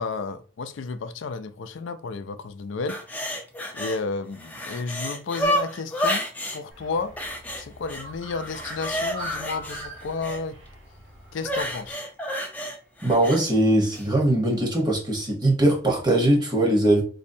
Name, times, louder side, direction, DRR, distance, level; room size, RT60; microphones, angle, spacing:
voice 1, 0.0-3.0 3.7-6.3 6.5-7.2 7.6-10.6 11.3-12.0, left 4 dB, 70° left, 0.4 m, -32 dB
sound 1, 2.9-4.0 4.3-6.6 7.2-8.1 8.4-10.4 11.4-13.4 13.9-14.1, equal, 10° left, 0.5 m, -30 dB
Bird, 6.7-11.9, equal, 85° right, 0.9 m, -41 dB
voice 2, 13.0-17.0, right 1 dB, 20° right, 1.1 m, -21 dB
4.2 x 2.6 x 2.7 m
head